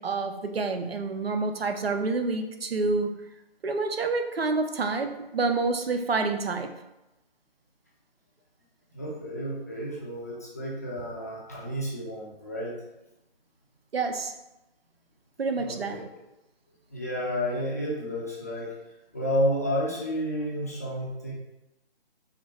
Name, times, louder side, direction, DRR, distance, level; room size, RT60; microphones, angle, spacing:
voice 1, 0.0-3.2 3.6-6.7 13.9-14.3 15.4-16.0, right 3 dB, 80° right, 6 dB, 0.8 m, -28 dB
voice 2, 8.9-12.8 15.6-16.0 16.9-18.7 19.1-21.3, equal, 15° left, -6 dB, 0.5 m, -31 dB
6.0 x 2.0 x 4.4 m, 0.94 s
figure-of-eight pair, 160°, 30 cm